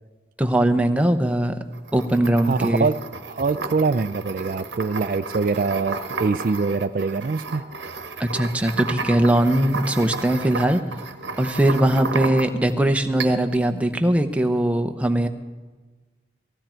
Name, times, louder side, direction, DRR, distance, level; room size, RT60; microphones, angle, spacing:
voice 1, 0.4-1.6 1.9-2.9 8.2-10.8 11.4-15.3, right 1 dB, 5° right, 6 dB, 0.8 m, -20 dB
sound 1, 1.7-12.7 13.2-13.6, right 3 dB, 70° right, 1.1 m, -33 dB
voice 2, 2.4-3.0 3.2-7.6, right 4 dB, 50° right, 11 dB, 0.4 m, -24 dB
18.5 x 15.5 x 4.5 m, 1.3 s
head